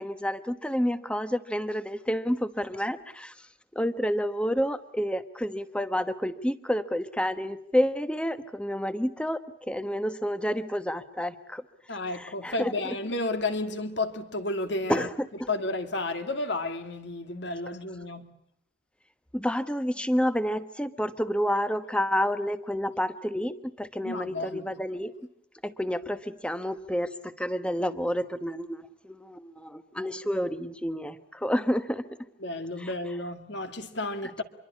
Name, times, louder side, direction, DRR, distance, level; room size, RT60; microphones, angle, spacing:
voice 1, 0.0-11.6 11.9-13.0 14.9-15.5 19.3-25.1 25.6-32.0 32.8-32.9 34.2-34.3, equal, 5° left, 1.1 m, -29 dB
voice 2, 11.9-15.1 15.5-18.3 24.0-24.7 32.4-34.4, left 2 dB, 65° left, 2.4 m, -32 dB
27.0 x 23.0 x 8.4 m
head